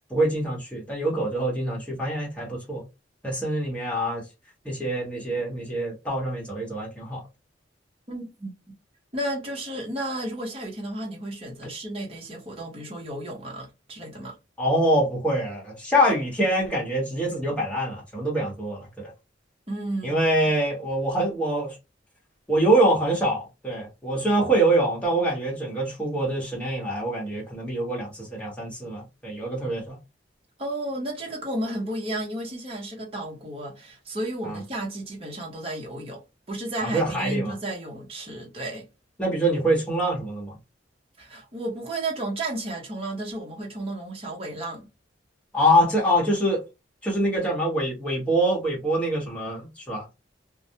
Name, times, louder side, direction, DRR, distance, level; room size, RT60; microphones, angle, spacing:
voice 1, 0.1-2.8 3.2-4.2 4.6-7.2 14.6-19.1 20.0-21.8 22.5-30.0 34.4-34.6 36.8-37.5 39.2-40.5 45.5-46.6 47.0-50.0, right 1 dB, 5° left, 1.0 m, -25 dB
voice 2, 8.1-8.8 9.1-14.4 19.7-20.3 30.6-38.9 41.2-44.9, right 1 dB, 30° right, 0.7 m, -33 dB
2.3 x 2.0 x 2.7 m
head